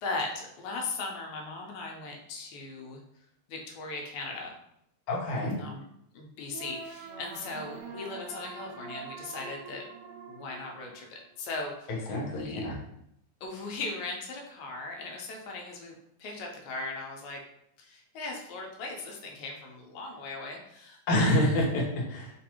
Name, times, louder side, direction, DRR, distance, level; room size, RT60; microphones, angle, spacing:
voice 1, 0.0-3.0 3.5-4.5 5.6-5.8 6.1-9.9 10.3-12.0 12.2-12.6 13.4-17.4 17.8-21.5, left 3 dB, 85° left, 1 dB, 2.0 m, -38 dB
voice 2, 5.1-5.6 11.9-12.8 21.1-22.3, left 1 dB, 65° left, -3 dB, 1.4 m, -27 dB
sound 1, 6.5-11.5, right 4 dB, 80° right, 1.9 m, -44 dB
4.6 x 2.5 x 2.8 m, 0.75 s
omnidirectional pair, 3.4 m